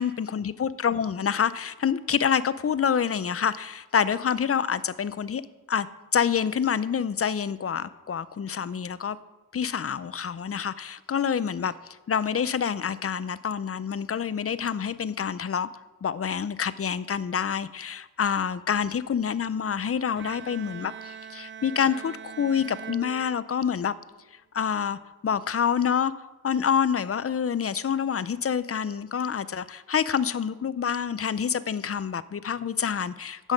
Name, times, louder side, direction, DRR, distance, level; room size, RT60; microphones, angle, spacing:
voice 1, 0.0-5.4 5.7-5.9 6.1-9.2 9.5-11.7 12.1-15.7 16.0-23.9 24.5-26.1 26.4-33.5, left 7 dB, 40° left, 16 dB, 0.5 m, -27 dB
Bowed string instrument, 20.2-23.9, right 8 dB, 35° right, 0.4 m, -42 dB
9.7 x 6.4 x 5.1 m, 1.2 s
cardioid pair, 50°, 36 cm